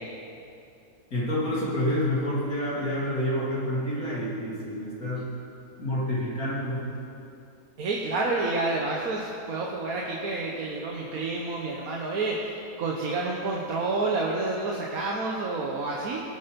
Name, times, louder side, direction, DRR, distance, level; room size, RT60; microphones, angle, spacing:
voice 1, 1.1-5.3 5.8-6.8, left 1 dB, 80° left, -7 dB, 3.5 m, -28 dB
voice 2, 7.8-16.2, right 3 dB, 75° right, -2 dB, 1.6 m, -29 dB
19.0 x 8.8 x 5.3 m, 2.6 s
omnidirectional pair, 1.5 m